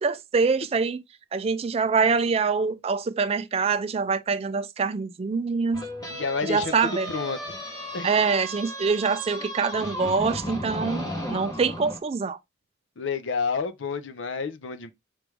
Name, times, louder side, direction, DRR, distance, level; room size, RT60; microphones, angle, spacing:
voice 1, 0.0-1.0 1.3-5.8 6.4-7.1 8.0-12.4, right 5 dB, 30° right, 0.3 m, -25 dB
sound 1, 5.7-12.0, equal, 20° left, 1.3 m, -35 dB
voice 2, 6.1-7.6 7.9-8.1 13.0-14.9, left 5 dB, 85° left, 0.6 m, -30 dB
5.0 x 3.1 x 3.3 m
head